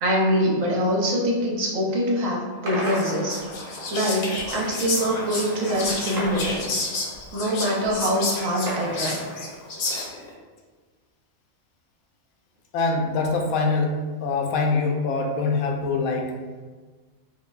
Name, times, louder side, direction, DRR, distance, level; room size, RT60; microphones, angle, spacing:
voice 1, 0.0-3.4 3.9-6.7 7.3-9.2, equal, 75° right, -3 dB, 1.1 m, -24 dB
sound 1, 2.7-4.0 6.2-7.3 8.7-9.8, right 1 dB, 45° right, 0.9 m, -34 dB
Whispering, 2.8-10.3, left 3 dB, 60° left, 0.7 m, -30 dB
voice 2, 12.7-13.9 14.2-16.3, left 3 dB, 85° left, 2 dB, 1.0 m, -24 dB
5.1 x 2.2 x 2.3 m, 1.4 s
omnidirectional pair, 1.4 m